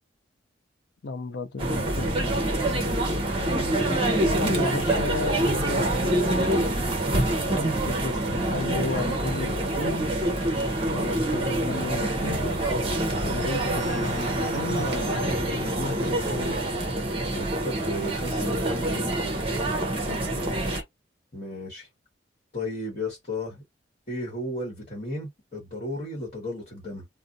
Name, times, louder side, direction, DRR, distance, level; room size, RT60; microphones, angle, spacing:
voice 1, 1.0-2.2 4.4-6.8 7.8-10.0 10.9-12.4 13.2-16.6 20.0-20.8, left 3 dB, 60° left, 0.5 m, -34 dB
sound 1, 1.6-20.8, right 1 dB, 30° right, 0.7 m, -26 dB
voice 2, 2.6-3.0 4.3-4.6 17.3-19.4 21.3-21.9 22.5-23.6 24.1-27.1, left 1 dB, 35° left, 1.2 m, -34 dB
2.5 x 2.1 x 3.8 m
head